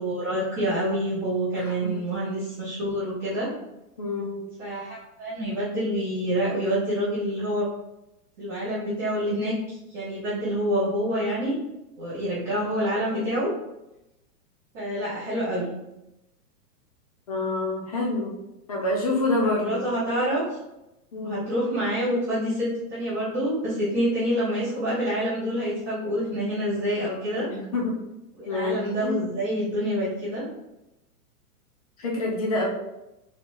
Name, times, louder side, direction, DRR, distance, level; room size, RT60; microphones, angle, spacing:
voice 1, 0.0-3.5 4.6-7.7 8.4-11.5 12.0-13.5 14.7-15.7 19.4-20.4 21.2-27.5 28.4-30.4, equal, 10° right, -14 dB, 0.7 m, -27 dB
voice 2, 1.6-2.0 4.0-4.4 17.3-18.3 18.7-19.8 21.1-21.4 27.4-28.0 28.5-29.2 32.0-32.7, left 2 dB, 25° left, -2 dB, 0.6 m, -27 dB
4.1 x 2.6 x 4.5 m, 0.92 s
supercardioid pair, 180°, 47 cm